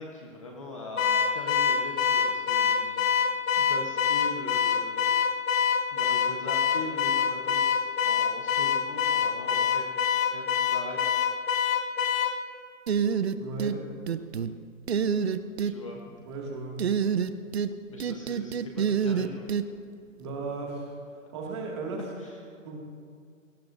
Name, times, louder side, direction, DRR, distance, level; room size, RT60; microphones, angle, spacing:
voice 1, 0.0-3.0 3.6-5.0 5.9-9.9 10.3-11.0 15.6-16.0 17.9-19.5 22.2-22.4, left 2 dB, 25° left, 0 dB, 0.9 m, -41 dB
Car / Alarm, 1.0-12.4, left 7 dB, 75° left, 1.2 m, -25 dB
sound 1, 12.9-13.8 14.1-14.5 14.9-15.7 16.8-17.7 18.0-19.6, right 7 dB, 50° right, 0.7 m, -27 dB
voice 2, 13.4-13.8 15.9-16.9 20.2-22.0 22.6-22.8, right 3 dB, 20° right, -1 dB, 2.0 m, -36 dB
27.0 x 18.0 x 2.6 m, 2.3 s
hypercardioid pair, 180°, 40 cm